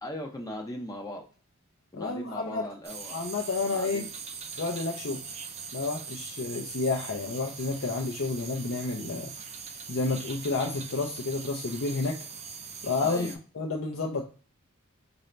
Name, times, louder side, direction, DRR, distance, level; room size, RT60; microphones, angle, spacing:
voice 1, 0.0-1.2 1.9-3.3 3.6-4.1 13.0-13.4, left 1 dB, 15° left, 1 dB, 0.5 m, -38 dB
voice 2, 1.9-2.7 3.1-4.0 4.6-5.3 5.7-9.3 9.9-12.2 12.8-13.3 13.6-14.2, left 3 dB, 60° left, -1 dB, 0.6 m, -30 dB
sound 1, 2.8-13.4, right 6 dB, 30° right, 0.5 m, -41 dB
4.0 x 2.5 x 3.3 m, 0.38 s
head